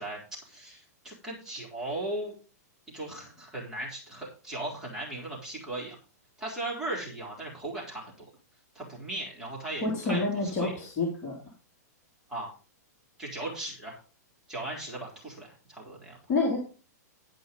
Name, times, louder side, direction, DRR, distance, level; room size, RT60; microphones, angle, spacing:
voice 1, 0.0-2.4 2.9-6.0 6.4-8.3 8.8-10.7 12.3-12.5 13.2-14.0 14.5-16.2, right 1 dB, 5° right, -4 dB, 3.6 m, -37 dB
voice 2, 9.8-11.3 16.3-16.6, left 3 dB, 25° left, -4 dB, 3.1 m, -28 dB
11.5 x 5.5 x 5.3 m, 0.35 s
hypercardioid pair, 150°, 9 cm